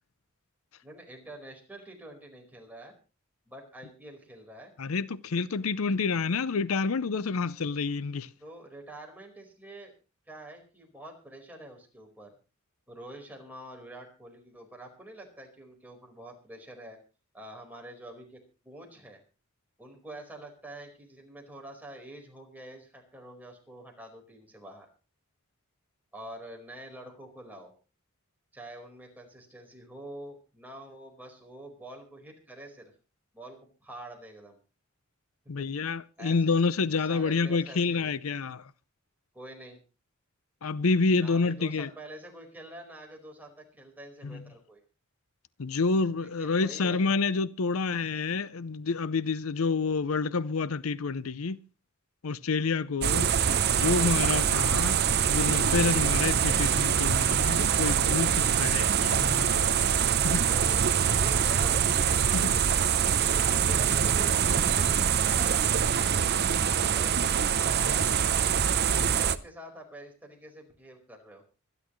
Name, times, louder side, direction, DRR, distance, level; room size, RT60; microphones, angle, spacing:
voice 1, 0.8-2.9 3.5-4.7 8.4-9.9 10.3-12.3 12.9-17.0 17.3-19.2 19.8-24.9 26.1-27.7 28.5-32.9 33.3-34.6 35.6-35.7 36.2-36.6 36.9-38.1 39.3-39.8 41.1-44.8 46.2-47.0 60.4-62.2 62.7-66.4 69.1-71.4, right 1 dB, 10° right, 4.6 m, -46 dB
voice 2, 4.8-8.3 35.5-38.7 40.6-41.9 44.2-44.4 45.6-51.6 52.2-53.3 53.7-55.0 55.3-59.7 60.2-60.4 62.3-62.5 68.9-69.2, left 4 dB, 90° left, 0.6 m, -28 dB
sound 1, 53.0-69.4, right 8 dB, 50° right, 0.7 m, -24 dB
25.0 x 11.0 x 3.2 m
head